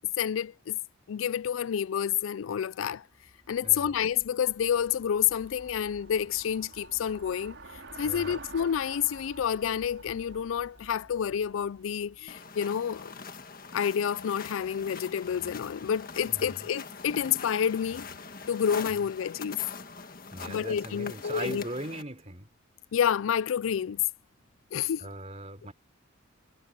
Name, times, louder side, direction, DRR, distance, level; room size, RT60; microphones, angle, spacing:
voice 1, 0.2-0.8 1.1-3.0 3.5-7.6 8.0-13.1 13.7-18.1 18.5-19.6 20.5-21.6 22.9-24.0 24.7-25.1, left 8 dB, 80° left, 0.4 m, -29 dB
Traffic noise roadway noise / Bicycle, 3.1-12.3, right 3 dB, 70° right, 5.3 m, -49 dB
voice 2, 3.6-3.9 8.0-8.3 16.3-16.6 20.3-22.5 25.0-25.7, right 1 dB, 35° right, 3.9 m, -39 dB
sound 1, 12.3-22.0, left 4 dB, 45° left, 1.6 m, -43 dB
head